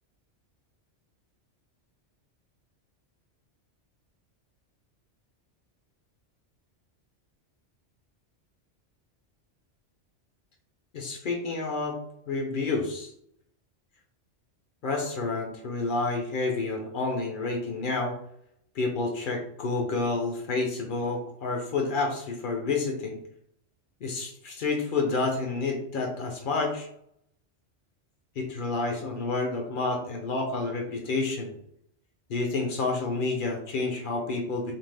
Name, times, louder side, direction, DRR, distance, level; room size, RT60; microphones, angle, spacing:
voice 1, 10.9-12.0 12.3-13.1 14.8-18.2 18.8-23.2 24.0-26.9 28.4-31.5 32.3-34.7, left 3 dB, 55° left, 2 dB, 0.6 m, -29 dB
2.6 x 2.2 x 3.2 m, 0.72 s
omnidirectional pair, 1.2 m